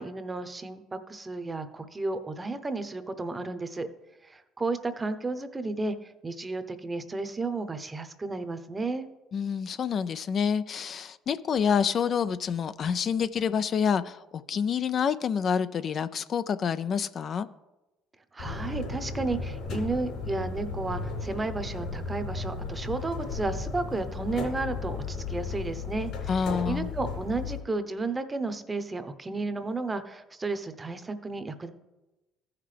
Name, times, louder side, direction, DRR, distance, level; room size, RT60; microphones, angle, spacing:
voice 1, 0.0-3.9 4.2-9.1 18.3-31.7, right 3 dB, 20° right, 0.8 m, -33 dB
voice 2, 9.3-17.5 26.3-26.9, left 7 dB, 50° left, 0.3 m, -28 dB
sound 1, 18.4-27.6, left 4 dB, 70° left, 3.6 m, -35 dB
14.5 x 5.8 x 3.3 m
supercardioid pair, 80°, 0 cm